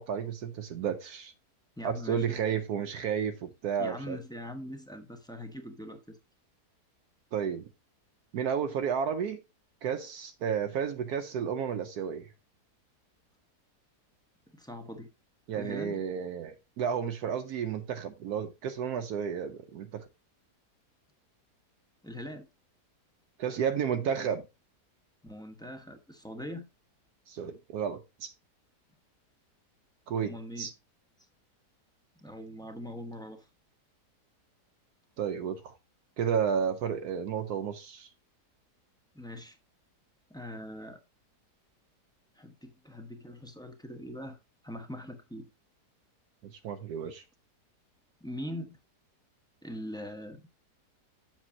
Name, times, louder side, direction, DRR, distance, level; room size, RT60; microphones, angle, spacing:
voice 1, 0.0-1.3 1.8-4.2 7.3-7.7 8.3-9.4 9.8-12.3 15.5-20.0 23.4-24.5 27.3-28.3 30.1-30.7 35.2-35.7 36.2-38.1 46.4-47.2, right 7 dB, 70° right, 1.1 m, -32 dB
voice 2, 1.8-2.4 3.8-6.2 14.5-15.1 15.6-16.0 22.0-22.5 25.2-26.7 30.2-30.7 32.2-33.5 39.1-39.6 40.3-41.0 42.3-44.4 44.6-45.5 48.2-48.8 49.6-50.5, equal, 5° left, 0.8 m, -42 dB
7.4 x 6.8 x 2.7 m
omnidirectional pair, 1.8 m